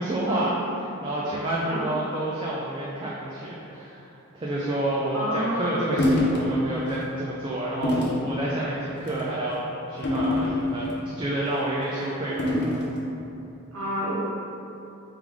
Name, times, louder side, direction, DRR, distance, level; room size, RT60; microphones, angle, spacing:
voice 1, 0.0-4.0 4.3-12.5, right 1 dB, 25° right, -6 dB, 0.4 m, -29 dB
voice 2, 5.1-5.7 13.7-14.1, equal, 75° right, -7 dB, 1.0 m, -29 dB
sound 1, 6.0-6.4 6.9-7.1 7.8-8.2 9.0-9.3 10.0-10.9 12.4-12.9, left 1 dB, 50° left, 0.6 m, -24 dB
3.7 x 3.1 x 3.5 m, 2.9 s
head